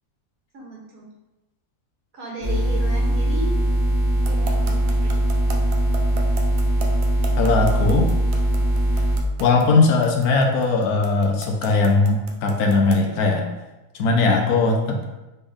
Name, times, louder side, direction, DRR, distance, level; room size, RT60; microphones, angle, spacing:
voice 1, 0.5-1.1 2.1-3.6 4.3-5.3 14.2-14.3, right 2 dB, 65° right, -3 dB, 1.5 m, -35 dB
sound 1, 2.4-9.2, right 1 dB, 35° left, 1.1 m, -21 dB
sound 2, 4.2-13.1, right 5 dB, 90° right, 1.2 m, -35 dB
voice 2, 7.4-8.1 9.4-13.5 14.0-15.0, left 3 dB, 75° left, 3 dB, 1.1 m, -19 dB
4.1 x 3.4 x 3.4 m, 1.0 s
omnidirectional pair, 1.7 m